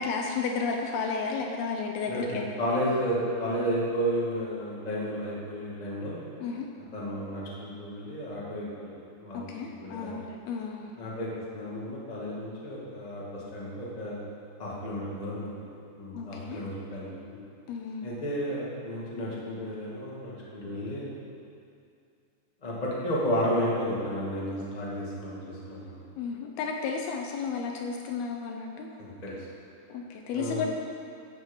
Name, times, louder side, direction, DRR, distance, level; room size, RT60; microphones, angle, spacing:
voice 1, 0.0-2.4 6.4-6.7 9.3-10.9 16.1-16.6 17.7-18.1 26.2-28.9 29.9-30.7, left 5 dB, 80° left, 2 dB, 2.3 m, -33 dB
voice 2, 2.0-6.2 6.9-8.9 9.2-10.2 11.0-14.2 14.6-15.6 16.0-17.4 18.0-21.1 22.6-26.0 29.0-29.5 30.3-30.7, equal, 60° left, -6 dB, 0.4 m, -32 dB
14.0 x 7.7 x 5.5 m, 2.5 s
omnidirectional pair, 5.1 m